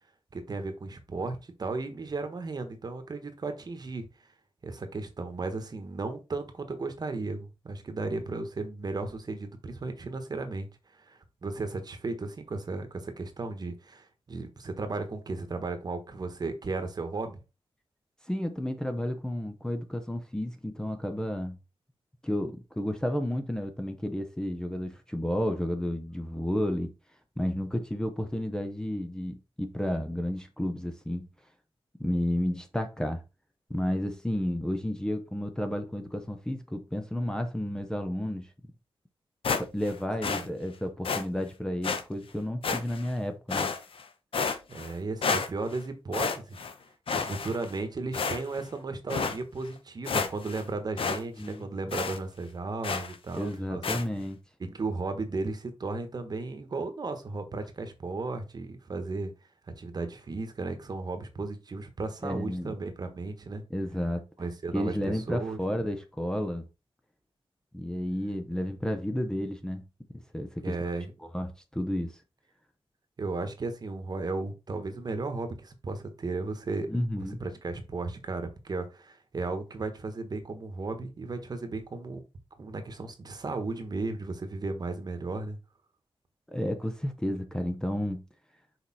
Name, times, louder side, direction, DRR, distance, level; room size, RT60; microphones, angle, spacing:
voice 1, 0.3-4.1 4.6-10.7 11.0-17.4 40.2-40.5 44.7-46.6 47.1-53.8 54.6-59.3 59.8-63.6 64.4-65.6 70.6-71.1 73.2-76.9 77.2-82.2 82.6-85.6, right 3 dB, 40° right, 1.3 m, -35 dB
voice 2, 18.3-21.6 22.2-26.9 27.4-31.3 32.0-33.2 33.7-38.5 39.6-43.7 51.1-51.7 53.3-54.4 62.2-62.7 63.7-64.3 64.7-66.7 67.7-69.8 70.1-70.8 71.2-72.2 76.9-77.4 86.5-88.2, left 1 dB, 5° left, 0.9 m, -32 dB
sound 1, 39.4-39.9 40.2-40.5 41.0-41.2 41.8-42.0 42.6-43.1 43.5-44.0 44.3-44.9 45.2-45.8 46.1-46.7 47.1-47.8 48.1-48.6 49.1-49.4 49.8-49.9 50.1-50.6 51.0-51.2 51.5-51.6 51.9-52.2 52.8-53.2 53.8-54.0, left 5 dB, 65° left, 0.9 m, -30 dB
6.5 x 4.9 x 4.2 m
wide cardioid pair, 165°, 10 cm